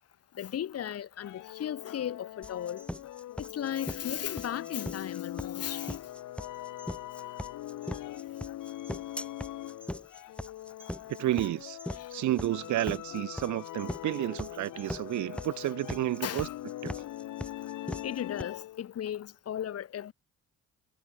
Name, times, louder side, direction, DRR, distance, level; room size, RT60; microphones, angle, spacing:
voice 1, 0.3-2.8 3.4-5.9 11.9-12.1 14.9-15.2 16.2-16.5 18.0-20.1, left 10 dB, 55° left, 1.0 m, -36 dB
sound 1, 1.2-18.9, left 14 dB, 85° left, 4.7 m, -42 dB
sound 2, 2.4-18.4, left 1 dB, 5° left, 3.8 m, -40 dB
voice 2, 11.2-11.8 12.1-16.5 16.8-16.9, right 14 dB, 70° right, 0.8 m, -31 dB
cardioid pair, 90°, 30 cm